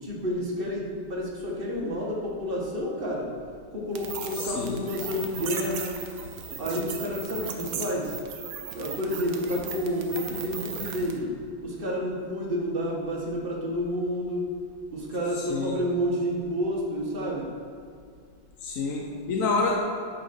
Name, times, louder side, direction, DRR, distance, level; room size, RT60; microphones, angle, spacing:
voice 1, 0.0-3.4 3.7-6.0 6.6-8.2 8.7-14.5 14.9-17.5, equal, 30° right, -3 dB, 1.5 m, -30 dB
sound 1, 3.9-11.2, right 6 dB, 60° right, 1.0 m, -37 dB
voice 2, 4.4-4.9 15.5-15.8 18.6-19.8, left 3 dB, 60° left, 0 dB, 0.9 m, -28 dB
8.6 x 5.7 x 5.9 m, 2.3 s
omnidirectional pair, 2.3 m